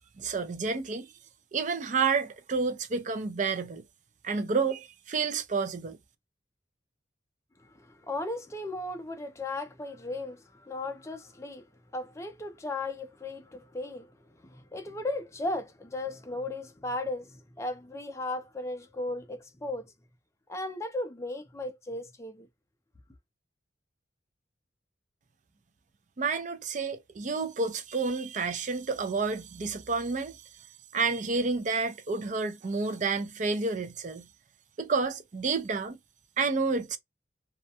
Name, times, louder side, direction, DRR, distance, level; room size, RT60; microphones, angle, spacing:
voice 1, 0.2-1.1 1.5-3.8 4.2-6.0 26.2-30.4 30.9-34.3 34.8-36.0 36.4-37.0, right 4 dB, 40° right, 0.4 m, -30 dB
voice 2, 7.6-11.6 11.9-14.1 14.4-19.9 20.5-22.5, left 2 dB, 15° left, 0.4 m, -36 dB
2.3 x 2.1 x 2.7 m
head